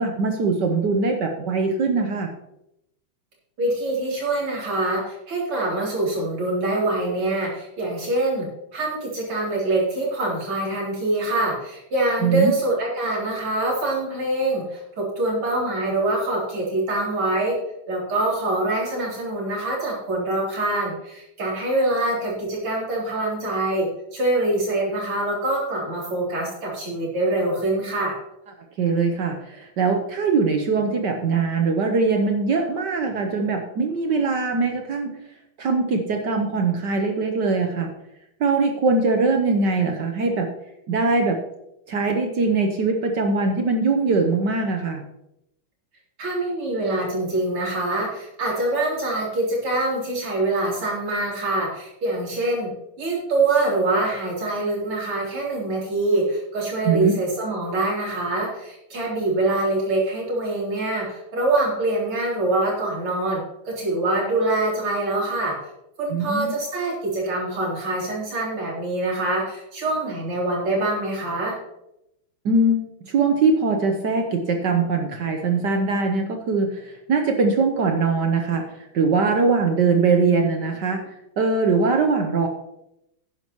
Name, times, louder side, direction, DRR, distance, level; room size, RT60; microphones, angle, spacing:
voice 1, 0.0-2.3 12.2-12.5 28.8-35.1 35.6-37.9 38.4-40.5 40.9-41.4 41.9-45.0 56.8-57.2 66.1-66.5 72.4-82.5, right 4 dB, 60° right, 4 dB, 1.4 m, -22 dB
voice 2, 3.6-8.5 8.7-17.5 17.9-28.1 46.2-52.7 53.0-63.4 63.8-65.5 66.0-71.6, right 2 dB, 90° right, -4 dB, 4.4 m, -24 dB
11.0 x 10.0 x 3.0 m, 0.83 s
omnidirectional pair, 2.3 m